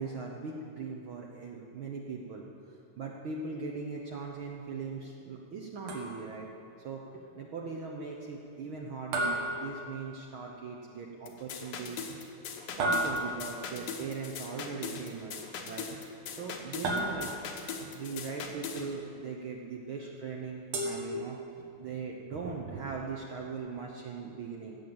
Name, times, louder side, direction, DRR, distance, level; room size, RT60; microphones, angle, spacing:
voice 1, 0.0-2.4 3.0-6.5 6.8-12.1 12.7-15.9 16.3-17.3 17.9-24.8, right 4 dB, 70° right, 0 dB, 1.2 m, -40 dB
sound 1, 5.9-6.5 9.1-10.4 12.8-13.7 16.8-17.7 20.7-21.8, right 1 dB, 90° right, 3.3 m, -33 dB
sound 2, 11.3-18.9, left 5 dB, 75° left, 2.5 m, -40 dB
16.5 x 7.3 x 7.9 m, 2.5 s
omnidirectional pair, 3.5 m